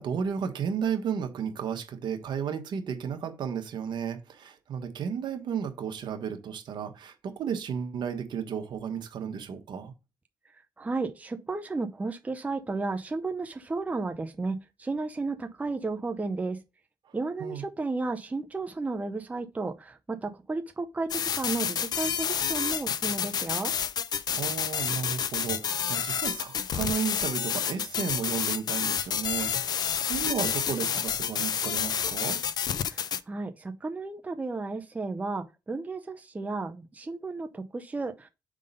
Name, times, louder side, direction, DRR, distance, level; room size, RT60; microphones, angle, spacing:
voice 1, 0.0-9.9 17.4-17.6 24.3-32.4, right 7 dB, 70° right, 1.2 m, -33 dB
voice 2, 10.8-16.6 17.1-23.7 32.9-38.3, right 3 dB, 20° right, 0.6 m, -33 dB
sound 1, 21.1-33.2, left 8 dB, 60° left, 0.5 m, -29 dB
5.0 x 3.7 x 5.4 m
cardioid pair, 90°, 8 cm